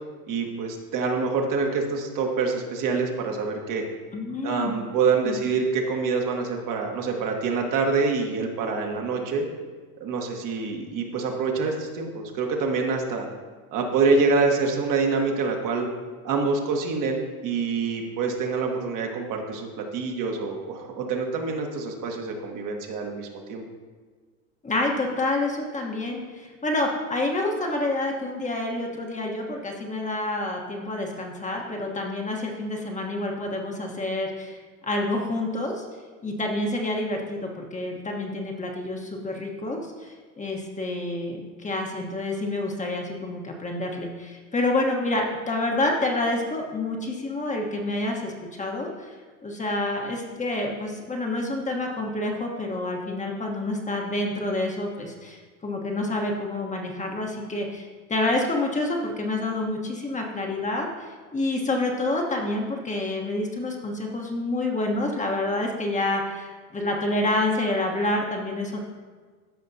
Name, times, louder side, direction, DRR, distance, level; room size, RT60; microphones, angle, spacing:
voice 1, 0.3-3.8 4.4-9.5 10.0-13.3 13.7-15.9 16.2-23.6, right 4 dB, 45° right, 2 dB, 1.4 m, -26 dB
voice 2, 4.1-4.7 5.2-5.4 24.6-34.6 34.8-35.8 36.2-48.3 48.6-49.1 49.4-68.8, left 2 dB, 15° left, 0 dB, 1.2 m, -28 dB
14.0 x 5.4 x 2.7 m, 1.5 s
hypercardioid pair, 95°, 42 cm